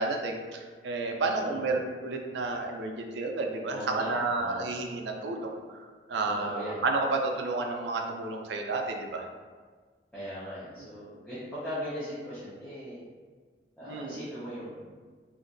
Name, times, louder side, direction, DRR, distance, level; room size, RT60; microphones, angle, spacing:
voice 1, 0.0-9.2 13.9-14.2, right 3 dB, 70° right, 2 dB, 0.4 m, -31 dB
voice 2, 3.7-4.7 6.2-6.8 10.1-13.0 13.8-14.9, equal, 5° left, -13 dB, 0.7 m, -39 dB
2.9 x 2.5 x 2.5 m, 1.5 s
head